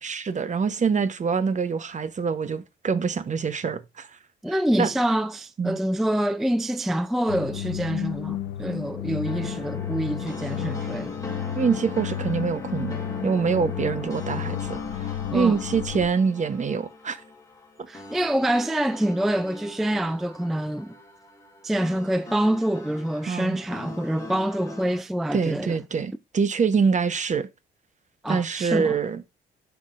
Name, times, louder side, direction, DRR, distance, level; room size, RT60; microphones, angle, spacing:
voice 1, 0.0-4.1 4.5-4.9 5.6-5.8 11.5-13.0 13.2-17.2 23.3-23.6 25.3-27.5 28.3-29.2, right 5 dB, 35° right, 0.9 m, -25 dB
voice 2, 4.4-11.1 15.3-15.6 17.9-20.9 21.6-25.8 28.2-29.0, right 1 dB, ahead, 0.3 m, -26 dB
sound 1, 7.3-16.1, left 11 dB, 85° left, 0.6 m, -32 dB
sound 2, 9.2-25.0, left 2 dB, 15° left, 2.2 m, -39 dB
9.8 x 5.9 x 2.5 m
cardioid pair, 90°, 20 cm